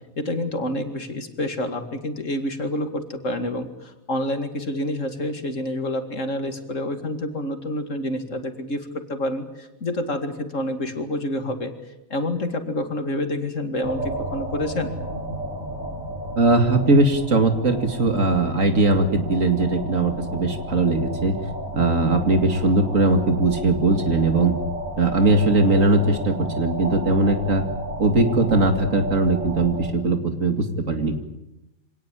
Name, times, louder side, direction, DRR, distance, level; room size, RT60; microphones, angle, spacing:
voice 1, 0.2-11.7 12.1-14.9, left 1 dB, 60° left, 7 dB, 2.6 m, -28 dB
sound 1, 13.8-29.9, right 1 dB, 85° right, 5.1 m, -33 dB
voice 2, 16.4-21.4 21.7-24.5 25.0-27.6 28.0-31.2, right 2 dB, 65° right, 7 dB, 2.7 m, -20 dB
25.0 x 18.5 x 9.1 m, 0.96 s
omnidirectional pair, 1.5 m